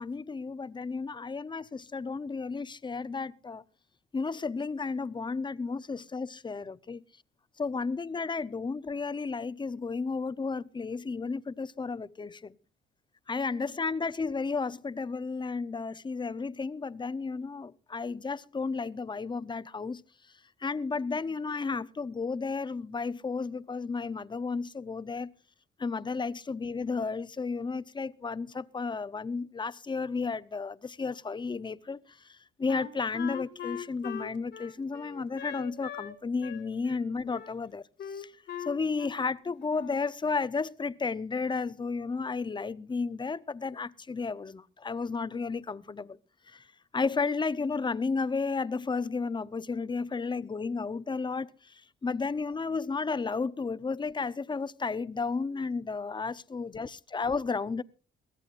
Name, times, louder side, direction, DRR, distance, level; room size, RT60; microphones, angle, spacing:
voice 1, 0.0-3.6 4.1-7.0 7.6-12.6 13.3-20.0 20.6-25.3 25.8-37.8 38.1-38.3 38.6-46.2 46.5-46.6 46.9-51.7 52.0-57.8, left 4 dB, 25° left, 0.7 m, -33 dB
Wind instrument woodwind instrument, 32.7-36.1 36.4-37.6 38.0-39.3 39.6-40.1, left 8 dB, 60° left, 2.2 m, -41 dB
22.5 x 16.0 x 2.5 m
cardioid pair, 90°, 20 cm